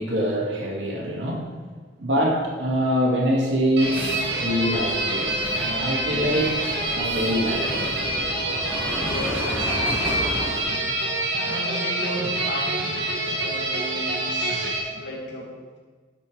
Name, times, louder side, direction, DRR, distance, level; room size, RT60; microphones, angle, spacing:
voice 1, 0.0-1.5 2.0-6.6 6.9-7.9, equal, 90° right, -2 dB, 2.3 m, -24 dB
sound 1, 3.8-10.6, equal, 10° right, 2.4 m, -33 dB
sound 2, 3.8-14.8, right 1 dB, 70° right, 2.3 m, -26 dB
voice 2, 9.0-10.6 11.0-15.8, left 1 dB, 80° left, -3 dB, 2.5 m, -35 dB
12.0 x 8.2 x 5.0 m, 1.4 s
head